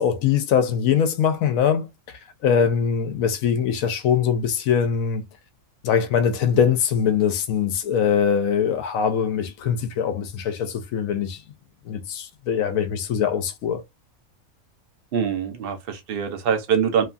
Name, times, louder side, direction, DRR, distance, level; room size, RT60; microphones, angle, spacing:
voice 1, 0.0-5.3 5.8-11.4 11.9-13.8, left 7 dB, 80° left, 1.0 m, -22 dB
voice 2, 15.1-17.0, right 7 dB, 55° right, 0.7 m, -23 dB
3.0 x 2.3 x 2.5 m
omnidirectional pair, 1.5 m